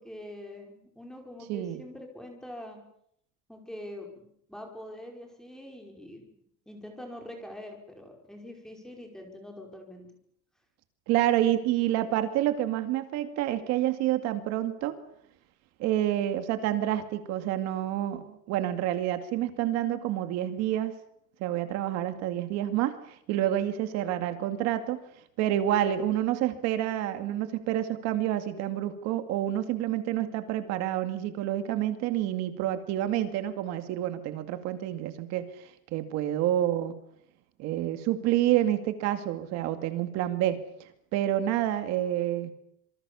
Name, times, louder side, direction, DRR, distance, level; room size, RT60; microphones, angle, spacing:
voice 1, 0.0-2.8 3.5-6.3 6.6-10.1, left 1 dB, ahead, 2 dB, 5.1 m, -44 dB
voice 2, 1.5-1.8 11.1-15.0 15.8-21.0 21.4-25.0 25.4-36.9 37.6-40.6 41.1-42.5, right 12 dB, 65° right, 9 dB, 2.4 m, -28 dB
27.0 x 24.0 x 7.1 m, 0.71 s
cardioid pair, 175°, 29 cm